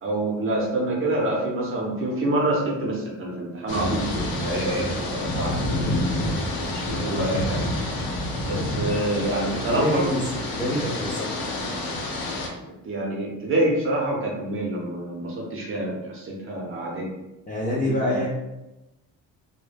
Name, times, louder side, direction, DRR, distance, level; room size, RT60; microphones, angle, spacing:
voice 1, 0.0-5.9 6.7-7.6 8.4-10.1 12.8-17.1 17.8-18.2, right 1 dB, 35° right, -2 dB, 0.6 m, -27 dB
sound 1, 3.7-12.5, left 1 dB, 75° left, 0.6 m, -28 dB
voice 2, 9.6-10.2 10.5-11.3 17.5-18.3, left 1 dB, 25° left, -5 dB, 0.3 m, -26 dB
2.2 x 2.1 x 3.2 m, 0.98 s
cardioid pair, 155°, 37 cm